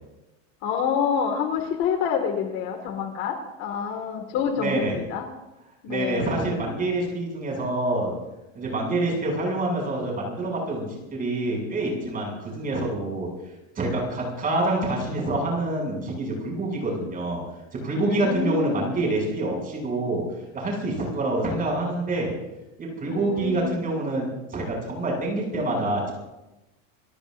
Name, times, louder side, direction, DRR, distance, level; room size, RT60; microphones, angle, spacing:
voice 1, 0.6-5.3 5.8-6.3 17.9-18.9 23.0-23.8, left 7 dB, 45° left, 5 dB, 2.2 m, -27 dB
voice 2, 4.6-5.0 5.9-8.1 8.6-13.3 13.8-17.4 17.7-20.2 20.5-22.3 22.8-26.0, right 2 dB, 20° right, -2 dB, 7.2 m, -26 dB
29.0 x 18.0 x 2.7 m, 1.0 s
supercardioid pair, 160°, 38 cm